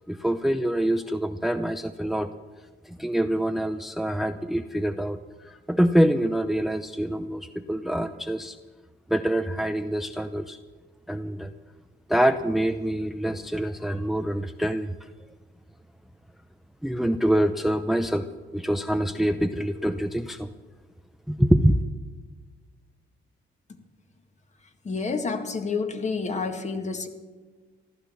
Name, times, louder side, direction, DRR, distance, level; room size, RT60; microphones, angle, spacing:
voice 1, 0.1-2.3 2.8-8.6 9.1-10.6 11.1-11.5 12.1-14.9 16.8-18.2 18.5-20.5 21.3-21.8, right 1 dB, ahead, 9 dB, 0.6 m, -25 dB
voice 2, 24.8-27.1, left 4 dB, 35° left, 6 dB, 1.9 m, -29 dB
15.0 x 12.0 x 7.1 m, 1.4 s
cardioid pair, 90°, 20 cm